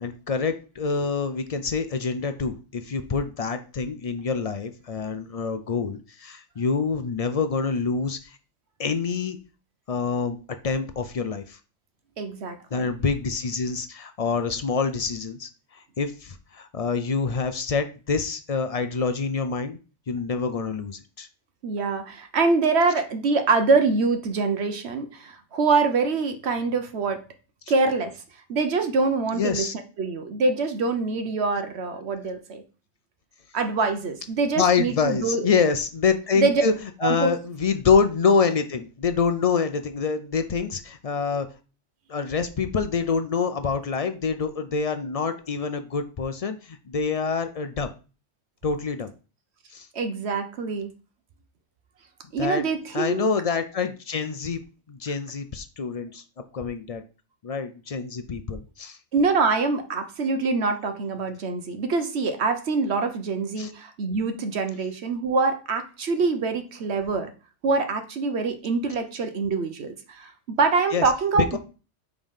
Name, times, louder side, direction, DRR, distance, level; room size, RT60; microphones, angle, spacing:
voice 1, 0.0-8.3 8.8-9.4 9.9-10.4 10.6-11.6 12.7-19.8 20.1-21.3 29.3-29.7 34.6-36.7 37.0-41.5 42.1-47.9 48.6-49.1 49.7-49.9 52.4-52.6 52.9-54.6 54.9-56.2 56.5-57.0 57.4-59.0 63.6-63.7 70.9-71.0, left 5 dB, 50° left, 9 dB, 0.4 m, -26 dB
voice 2, 12.2-12.9 21.6-27.2 27.7-28.1 28.5-29.7 30.0-32.6 33.5-35.5 36.3-36.6 37.0-37.3 49.9-50.9 52.3-53.3 59.1-67.3 67.6-71.6, right 4 dB, 65° right, 8 dB, 1.0 m, -24 dB
5.2 x 3.6 x 5.5 m, 0.34 s
omnidirectional pair, 1.2 m